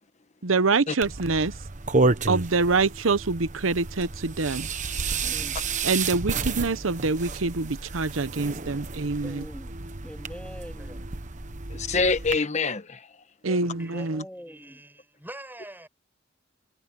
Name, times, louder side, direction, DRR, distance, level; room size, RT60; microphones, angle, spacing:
voice 1, 0.4-1.5 2.3-4.7 5.8-9.4 13.4-14.2, right 3 dB, 90° right, 0.9 m, -25 dB
sound 1, 1.0-12.4, right 3 dB, 40° right, 1.1 m, -31 dB
voice 2, 5.2-5.6 9.2-9.7 10.0-11.1 13.4-14.8, equal, 5° left, 3.4 m, -43 dB
voice 3, 11.7-13.1, left 4 dB, 35° left, 1.2 m, -25 dB
voice 4, 13.8-15.9, right 1 dB, 10° right, 8.0 m, -45 dB
head